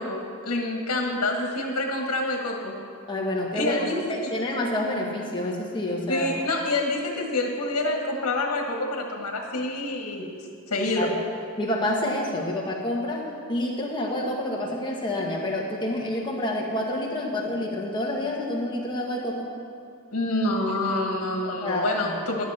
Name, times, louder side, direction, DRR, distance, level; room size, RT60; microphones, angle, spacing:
voice 1, 0.0-2.7 3.5-4.3 6.1-10.3 10.7-11.1 20.1-22.5, left 2 dB, 85° left, 1 dB, 1.5 m, -27 dB
voice 2, 3.1-3.8 4.1-6.4 11.0-11.2 11.6-19.5 21.6-22.2, left 1 dB, 20° left, -2 dB, 1.5 m, -28 dB
11.5 x 10.0 x 4.3 m, 2.3 s
head